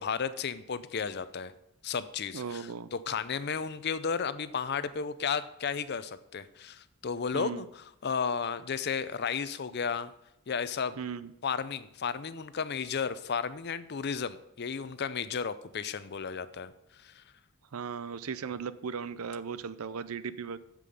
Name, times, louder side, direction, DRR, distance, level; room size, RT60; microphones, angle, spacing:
voice 1, 0.0-1.5 1.8-7.7 8.0-10.1 10.5-11.0 11.4-16.7 17.0-17.2, left 6 dB, 50° left, 14 dB, 0.5 m, -33 dB
voice 2, 2.3-2.9 7.3-7.7 11.0-11.3 17.7-20.6, right 6 dB, 75° right, 15 dB, 0.5 m, -37 dB
8.4 x 7.6 x 5.4 m, 0.82 s
head